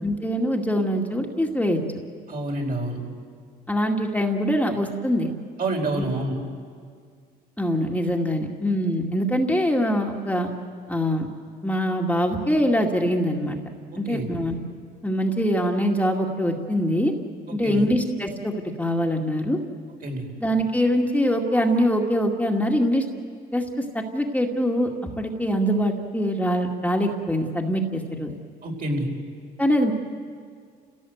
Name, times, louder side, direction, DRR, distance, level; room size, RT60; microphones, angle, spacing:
voice 1, 0.0-1.8 3.7-5.3 6.0-6.1 7.6-10.5 10.9-11.3 11.6-13.6 14.0-14.6 15.0-17.1 17.5-18.5 18.8-19.6 20.4-23.0 23.5-23.6 23.9-28.3 29.6-29.9, equal, 10° left, 1 dB, 2.2 m, -23 dB
voice 2, 2.3-3.0 5.6-6.4 14.1-14.3 17.6-17.9 20.0-20.3 28.6-29.1, right 1 dB, 50° right, 1 dB, 5.0 m, -27 dB
30.0 x 17.0 x 8.0 m, 2.1 s
supercardioid pair, 80°, 18 cm